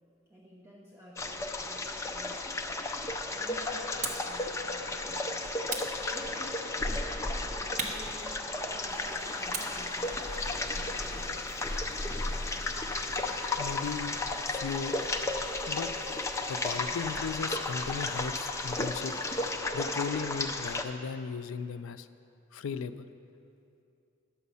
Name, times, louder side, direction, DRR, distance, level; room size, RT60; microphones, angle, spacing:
voice 1, 0.3-2.6 3.3-5.5 6.1-11.5, equal, 10° right, -5 dB, 0.9 m, -51 dB
sound 1, 1.2-20.8, left 2 dB, 15° left, 0.4 m, -34 dB
sound 2, 4.0-4.4 5.7-6.6 7.8-8.9 9.5-11.7, right 3 dB, 35° right, 0.9 m, -39 dB
sound 3, 8.9-19.6, equal, 35° left, 2.6 m, -57 dB
voice 2, 13.6-14.2 14.5-14.9 15.7-15.9 16.5-19.1 19.7-22.1 22.5-23.1, left 6 dB, 90° left, 12 dB, 0.4 m, -36 dB
11.0 x 7.1 x 5.5 m, 2.6 s
head